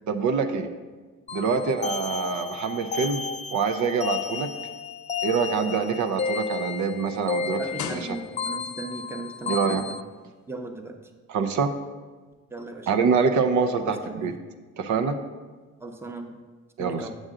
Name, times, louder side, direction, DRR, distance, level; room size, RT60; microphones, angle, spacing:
voice 1, 0.1-0.7 1.3-3.3 3.5-4.5 5.2-8.2 9.5-9.8 11.3-11.7 12.9-14.3 14.8-15.2 16.8-17.1, right 5 dB, 75° right, 7 dB, 0.6 m, -25 dB
sound 1, 1.3-10.0, left 5 dB, 25° left, 0.3 m, -33 dB
sound 2, 5.6-8.7 9.6-9.7, left 6 dB, 75° left, 0.7 m, -40 dB
voice 2, 7.5-9.9 10.5-11.0 12.5-12.9 13.8-14.3 15.8-16.3 16.8-17.1, right 2 dB, 10° right, 5 dB, 0.7 m, -37 dB
7.6 x 6.3 x 3.7 m, 1.4 s
cardioid pair, 90°, 30 cm